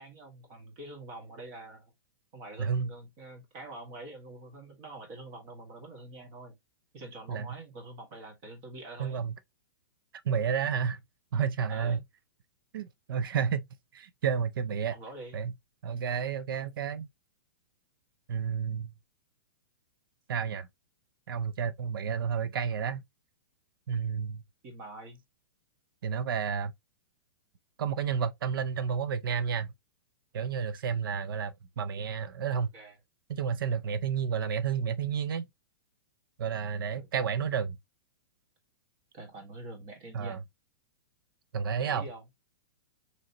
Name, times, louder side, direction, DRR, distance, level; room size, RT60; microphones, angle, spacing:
voice 1, 0.0-1.9 2.3-6.6 6.9-9.2 11.7-12.0 14.9-15.4 24.6-25.2 32.7-32.9 36.9-37.1 39.1-40.4 41.8-42.2, right 2 dB, 35° right, 1.7 m, -45 dB
voice 2, 2.6-2.9 7.3-7.5 9.0-9.3 10.2-11.0 11.3-12.0 12.7-13.7 13.9-14.9 15.3-15.5 15.8-17.1 18.3-18.9 20.3-20.7 21.3-23.0 23.9-24.4 26.0-26.7 27.8-29.7 30.3-32.7 33.3-35.5 36.4-37.8 40.1-40.4 41.5-42.0, right 7 dB, 80° right, 0.5 m, -31 dB
4.9 x 3.2 x 2.8 m
hypercardioid pair, 160°, 11 cm